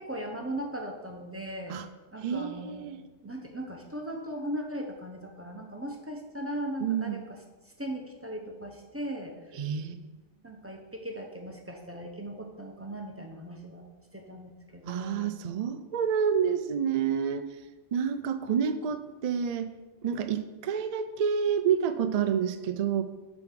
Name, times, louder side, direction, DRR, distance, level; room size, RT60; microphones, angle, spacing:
voice 1, 0.0-1.8 2.1-2.9 3.2-7.4 7.8-9.4 10.4-15.3 18.4-18.6, right 1 dB, 15° right, 1 dB, 0.7 m, -38 dB
voice 2, 2.2-3.0 6.8-7.2 9.5-10.0 14.8-17.4 17.9-19.7 20.0-23.0, right 7 dB, 80° right, 10 dB, 0.3 m, -28 dB
5.8 x 5.0 x 5.8 m, 1.1 s
omnidirectional pair, 1.2 m